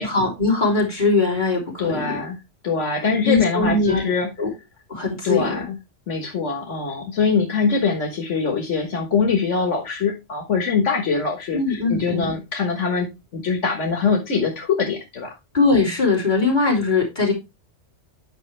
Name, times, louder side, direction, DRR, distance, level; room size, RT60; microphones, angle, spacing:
voice 1, 0.0-2.2 3.2-4.0 4.4-4.5 4.9-5.6 11.5-12.3 15.5-17.3, left 3 dB, 40° left, -2 dB, 3.2 m, -20 dB
voice 2, 1.8-2.4 2.6-4.3 5.2-5.8 6.1-15.3, left 5 dB, 85° left, 3 dB, 1.7 m, -23 dB
8.9 x 5.5 x 3.2 m, 0.24 s
omnidirectional pair, 1.2 m